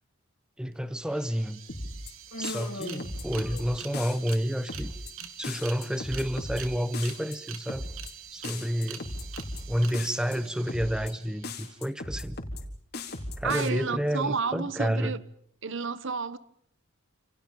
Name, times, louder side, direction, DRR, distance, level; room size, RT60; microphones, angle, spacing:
voice 1, 0.6-1.6 2.4-4.9 5.4-7.9 8.3-9.1 9.7-12.4 13.4-15.2, equal, 5° right, 1.0 m, -30 dB
sound 1, 0.7-0.8 1.0-11.8, right 8 dB, 85° right, 3.4 m, -45 dB
sound 2, 1.7-2.1 2.4-3.6 3.9-4.4 4.7-5.1 5.4-6.6 6.9-7.4 7.7-8.1 8.4-9.6 9.9-10.4 10.7-11.1 11.4-12.6 12.9-13.7, left 2 dB, 50° left, 4.1 m, -37 dB
Human voice, 2.3-4.0, left 1 dB, 75° left, 2.9 m, -40 dB
voice 2, 13.4-15.2 15.6-16.4, right 5 dB, 65° right, 1.1 m, -31 dB
29.0 x 28.5 x 5.4 m
head